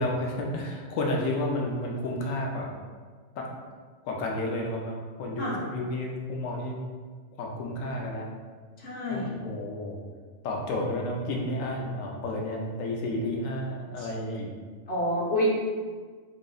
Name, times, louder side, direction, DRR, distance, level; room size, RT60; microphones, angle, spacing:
voice 1, 0.0-2.7 3.4-3.5 4.0-6.8 7.4-8.3 9.1-10.0 10.4-14.5, left 1 dB, 85° left, -1 dB, 1.0 m, -31 dB
voice 2, 8.8-9.3 14.0-14.1 14.9-15.5, equal, 55° left, -6 dB, 1.2 m, -28 dB
5.0 x 3.0 x 2.3 m, 1.5 s
omnidirectional pair, 1.3 m